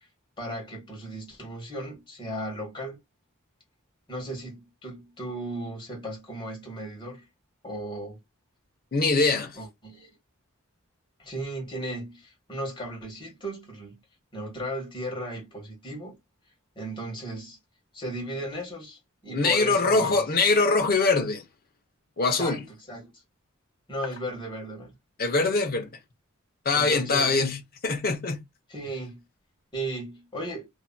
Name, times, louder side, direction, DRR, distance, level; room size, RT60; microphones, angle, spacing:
voice 1, 0.4-3.0 4.1-7.3 7.6-8.2 9.5-10.1 11.2-14.0 14.3-16.2 16.7-17.6 17.9-20.3 22.4-23.2 23.9-25.0 26.7-27.5 28.7-29.2 29.7-30.7, right 1 dB, 25° left, 1.5 m, -36 dB
voice 2, 8.9-9.6 19.3-21.4 22.2-22.6 25.2-25.9 26.6-28.4, left 3 dB, 45° left, 0.8 m, -23 dB
2.7 x 2.6 x 2.2 m
head